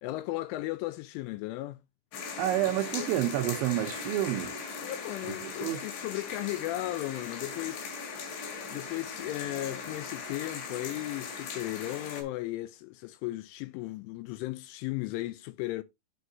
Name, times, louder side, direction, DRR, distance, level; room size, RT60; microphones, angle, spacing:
voice 1, 0.0-1.8 3.0-3.1 4.8-8.0 8.7-15.8, left 17 dB, 80° left, 2.9 m, -36 dB
sound 1, 2.1-12.2, left 5 dB, 65° left, 4.1 m, -39 dB
voice 2, 2.4-4.5 5.3-5.8, right 13 dB, 80° right, 2.9 m, -29 dB
12.5 x 4.6 x 2.7 m
omnidirectional pair, 5.8 m